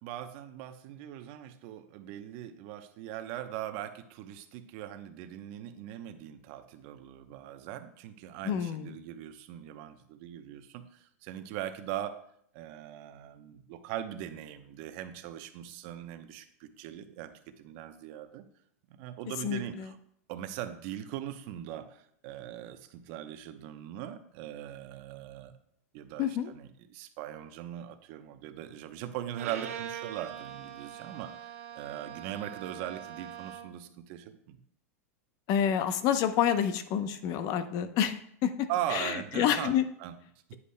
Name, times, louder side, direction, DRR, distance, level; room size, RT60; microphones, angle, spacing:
voice 1, 0.0-12.2 12.5-17.3 17.6-18.4 19.0-20.0 20.3-25.5 25.9-34.6 38.7-40.1 40.5-40.6, right 11 dB, 55° right, 9 dB, 0.8 m, -40 dB
voice 2, 8.4-8.9 19.4-19.9 26.2-26.5 35.5-39.8, left 9 dB, 45° left, 10 dB, 0.7 m, -28 dB
Bowed string instrument, 29.3-33.9, right 9 dB, 75° right, 1.1 m, -43 dB
9.5 x 8.4 x 2.2 m, 0.68 s
hypercardioid pair, 115°, 8 cm